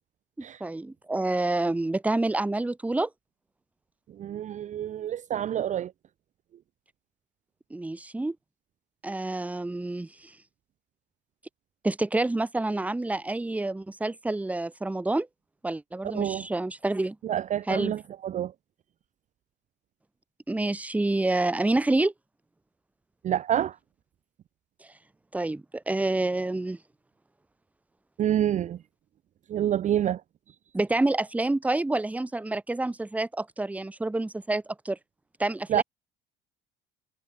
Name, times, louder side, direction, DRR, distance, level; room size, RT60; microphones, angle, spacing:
voice 1, 0.6-3.1 7.7-8.4 9.0-10.3 11.8-15.3 15.6-17.2 17.7-17.9 20.5-22.1 25.3-26.8 30.7-35.0 35.4-35.8, right 2 dB, 5° right, 0.8 m, -28 dB
voice 2, 4.2-5.9 16.1-16.5 17.2-18.5 23.2-23.8 28.2-28.8 29.5-30.2 35.7-35.8, right 11 dB, 35° right, 0.5 m, -27 dB
cardioid pair, 110°, 20 cm